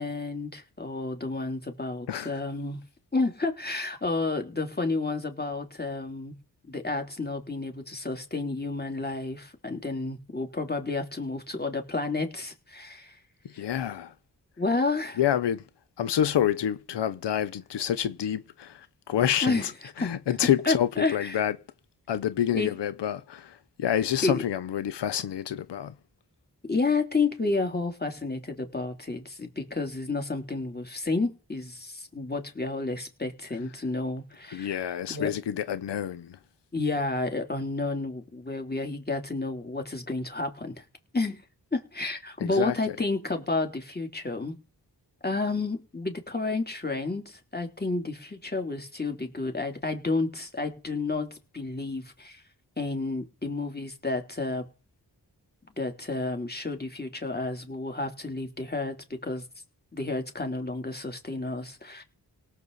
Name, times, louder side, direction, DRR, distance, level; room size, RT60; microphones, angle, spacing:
voice 1, 0.0-2.8 3.1-6.3 6.7-13.2 14.6-15.2 19.4-19.7 20.0-20.1 20.7-21.4 22.5-22.7 24.2-24.4 26.7-35.3 36.7-40.8 41.1-41.4 41.7-44.6 45.2-52.4 52.8-54.6 55.8-59.0 59.2-59.5 59.9-62.0, left 3 dB, 25° left, 3.2 m, -30 dB
voice 2, 2.1-2.4 13.4-14.1 15.2-15.6 16.0-19.7 20.0-21.6 22.1-25.9 34.5-36.4 42.4-43.0, left 10 dB, 85° left, 0.7 m, -28 dB
18.5 x 7.4 x 4.0 m
cardioid pair, 40°, 41 cm